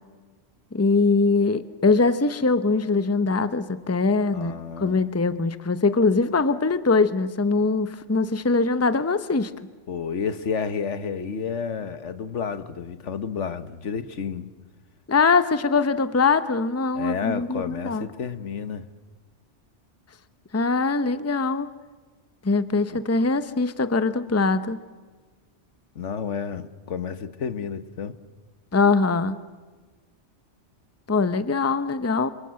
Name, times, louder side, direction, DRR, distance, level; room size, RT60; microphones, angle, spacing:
voice 1, 0.7-9.5 15.1-18.0 20.5-21.7 22.4-24.8 28.7-29.4 31.1-32.3, left 4 dB, 15° left, 0.8 m, -22 dB
voice 2, 4.3-5.0 9.9-14.5 16.9-18.8 22.9-23.0 25.9-28.1, left 6 dB, 80° left, 1.5 m, -31 dB
29.0 x 26.5 x 7.7 m
omnidirectional pair, 1.2 m